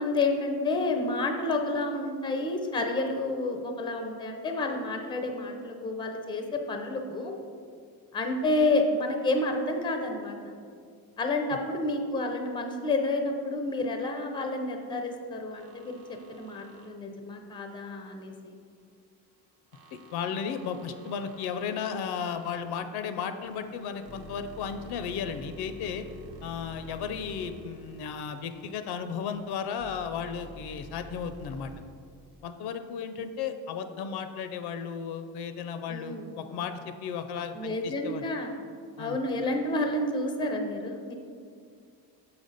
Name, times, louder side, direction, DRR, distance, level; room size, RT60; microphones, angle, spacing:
voice 1, 0.0-7.3 8.1-10.5 11.2-18.6 35.9-36.3 37.5-38.6 39.0-41.1, left 2 dB, 10° left, 4 dB, 0.5 m, -30 dB
sound 1, 15.6-16.9 19.7-22.6 23.4-28.8 29.3-31.8, equal, 75° right, 1.0 m, -49 dB
voice 2, 20.1-26.0 26.4-31.7 32.4-38.2 39.0-39.2, left 6 dB, 75° left, 9 dB, 0.5 m, -34 dB
7.0 x 5.1 x 4.0 m, 2.3 s
cardioid pair, 150°, 39 cm